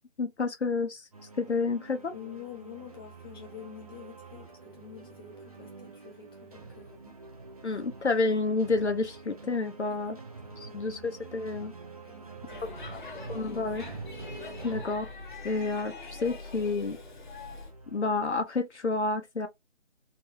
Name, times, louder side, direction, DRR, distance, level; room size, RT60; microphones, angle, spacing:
voice 1, 0.2-1.0 1.4-2.1 7.6-10.2 10.6-11.7 12.9-13.0 13.3-13.8 14.6-15.1 15.4-17.0 17.9-19.5, left 3 dB, 65° left, 0.9 m, -29 dB
sound 1, 1.1-18.4, right 4 dB, 30° right, 0.7 m, -47 dB
voice 2, 2.1-7.2 9.9-10.0 10.4-10.7 12.1-13.1, left 9 dB, 20° left, 1.0 m, -47 dB
Speech / Shout / Subway metro underground, 12.5-17.7, left 3 dB, 40° left, 1.1 m, -43 dB
4.1 x 2.2 x 2.8 m
figure-of-eight pair, 150°, 36 cm